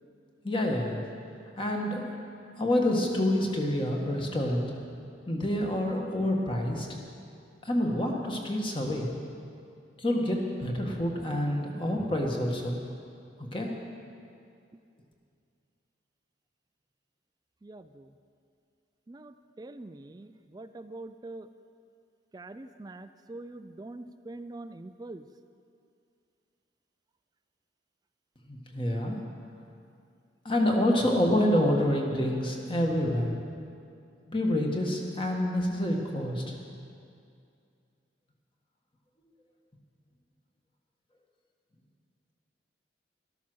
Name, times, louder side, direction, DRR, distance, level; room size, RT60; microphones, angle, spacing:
voice 1, 0.4-1.0 1.6-2.1 2.6-4.7 5.3-6.9 7.6-9.1 10.0-12.8 13.4-13.7 28.5-29.2 30.4-33.3 34.3-36.6, left 1 dB, 25° left, 0 dB, 1.5 m, -27 dB
voice 2, 17.6-18.1 19.1-21.5 22.3-25.2, right 2 dB, 20° right, 11 dB, 0.3 m, -44 dB
13.0 x 13.0 x 6.2 m, 2.4 s
head